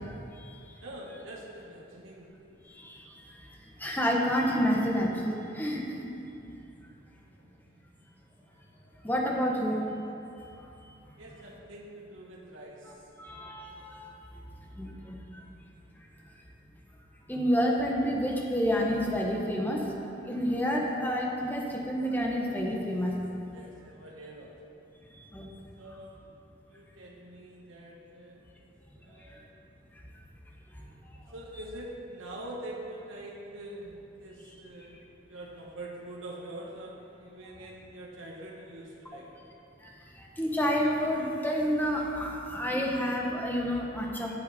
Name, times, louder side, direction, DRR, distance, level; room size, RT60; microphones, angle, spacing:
voice 1, 0.8-2.5 11.2-12.9 23.5-24.5 25.8-26.1 26.7-29.5 31.3-35.0 35.2-39.3, right 1 dB, 75° right, -3 dB, 1.5 m, -44 dB
voice 2, 3.8-5.8 9.0-10.0 13.2-14.1 14.8-15.1 17.3-19.8 20.3-23.2 25.3-25.5 40.4-44.3, equal, 10° left, -2 dB, 1.3 m, -28 dB
14.0 x 7.4 x 4.4 m, 2.8 s
head